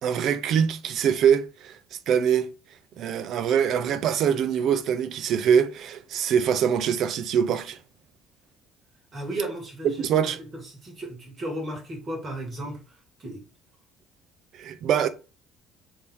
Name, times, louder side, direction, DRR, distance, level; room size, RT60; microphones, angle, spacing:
voice 1, 0.0-1.8 2.1-2.5 3.0-7.8 10.0-10.4 14.5-15.1, right 8 dB, 55° right, 0.5 m, -23 dB
voice 2, 9.1-13.4, right 1 dB, 35° right, 1.6 m, -35 dB
3.6 x 2.7 x 4.6 m
cardioid pair, 140°, 0 cm